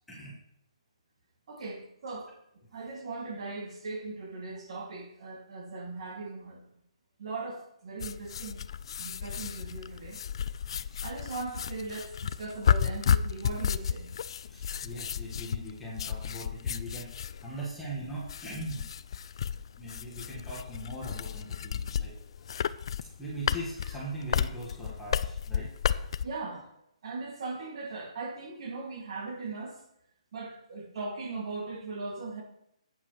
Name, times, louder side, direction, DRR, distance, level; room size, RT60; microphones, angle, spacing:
voice 1, 1.5-2.3 2.7-6.6 7.2-8.6 9.0-10.2 11.0-14.1 17.4-17.6 26.2-26.7 27.0-29.8 30.3-32.4, right 3 dB, 50° right, 2.3 m, -39 dB
sound 1, 8.0-26.3, left 8 dB, 45° left, 0.4 m, -32 dB
voice 2, 14.4-18.9 19.8-22.2 23.2-25.7, right 1 dB, 5° left, 1.5 m, -40 dB
11.0 x 8.7 x 3.1 m
hypercardioid pair, 165°, 4 cm